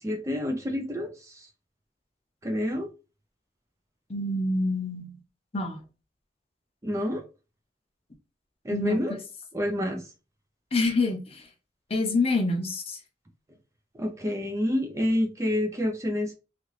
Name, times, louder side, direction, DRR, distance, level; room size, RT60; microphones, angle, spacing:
voice 1, 0.0-1.5 2.4-2.9 6.8-7.2 8.6-9.1 9.5-10.0 13.9-16.3, left 1 dB, 15° right, 0.4 m, -28 dB
voice 2, 4.1-5.2 5.5-5.8 8.7-9.0 10.7-11.4 11.9-13.0, left 2 dB, 35° left, 0.6 m, -26 dB
2.9 x 2.5 x 3.1 m
head